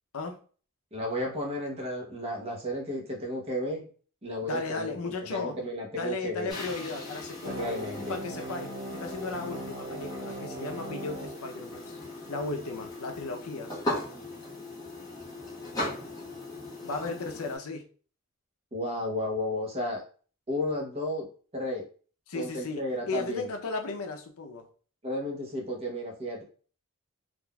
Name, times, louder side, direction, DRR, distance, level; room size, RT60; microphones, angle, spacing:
voice 1, 0.9-3.9 4.2-4.9 5.2-6.5 7.6-8.2 18.7-20.0 20.5-21.3 21.5-21.8 22.3-23.5 25.0-26.4, left 1 dB, 25° right, 0 dB, 0.8 m, -33 dB
voice 2, 4.4-5.6 6.0-7.7 8.1-12.0 12.3-13.7 16.8-17.8 22.3-24.7, left 3 dB, 75° left, 4 dB, 0.6 m, -35 dB
sound 1, 6.5-17.6, left 1 dB, 15° left, 1.0 m, -39 dB
sound 2, 7.4-12.4, right 1 dB, 65° right, 0.6 m, -40 dB
3.6 x 2.5 x 2.2 m, 0.40 s
head